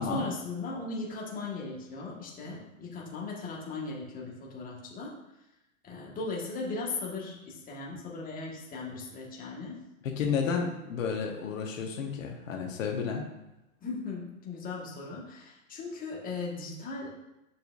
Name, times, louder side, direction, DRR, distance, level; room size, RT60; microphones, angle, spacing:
voice 1, 0.0-5.1 5.8-9.8 13.8-17.1, left 3 dB, 20° left, -3 dB, 1.6 m, -38 dB
voice 2, 10.0-13.2, left 6 dB, 65° left, 1 dB, 1.2 m, -31 dB
6.7 x 6.0 x 2.6 m, 0.92 s
hypercardioid pair, 115°, 41 cm